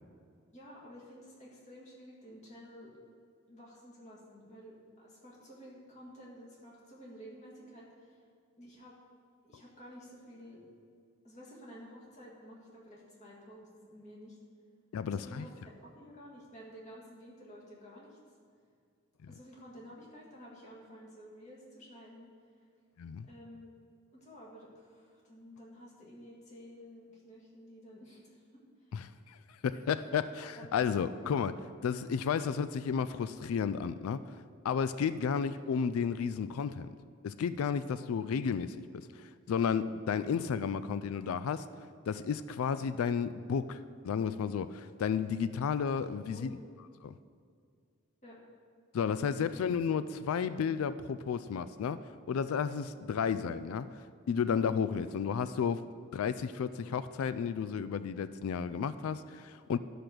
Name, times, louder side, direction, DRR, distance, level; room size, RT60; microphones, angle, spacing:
voice 1, 0.5-3.0 3.5-8.2 8.6-9.0 9.4-10.6 11.2-14.4 15.0-18.2 19.2-22.3 23.3-23.7 24.1-28.4 28.9-29.1 30.6-31.3 32.3-32.4 46.3-46.7 48.2-48.5 49.3-49.6, equal, 35° left, -4 dB, 1.9 m, -52 dB
voice 2, 14.9-15.5 19.2-19.3 23.0-23.3 28.9-31.5 31.8-34.3 34.6-36.9 37.2-41.7 42.1-43.8 44.0-46.6 47.0-47.1 48.9-54.0 54.3-55.9 56.1-59.8, left 6 dB, 90° left, 14 dB, 0.3 m, -32 dB
12.0 x 5.1 x 6.1 m, 2.2 s
head